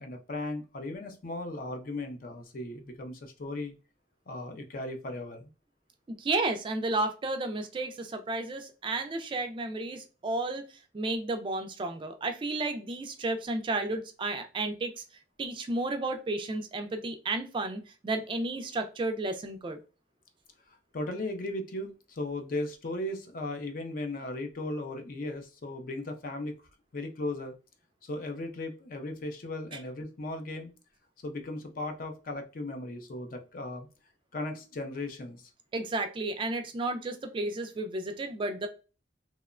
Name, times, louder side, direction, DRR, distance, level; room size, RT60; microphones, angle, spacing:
voice 1, 0.0-3.7 4.3-5.5 20.7-26.6 26.9-27.5 28.0-30.7 31.2-33.9 34.3-35.5, left 2 dB, 50° left, 5 dB, 0.5 m, -37 dB
voice 2, 6.2-10.6 10.9-15.0 15.4-19.8 35.7-38.7, right 2 dB, 30° right, 7 dB, 0.3 m, -32 dB
2.9 x 2.1 x 2.3 m, 0.32 s
head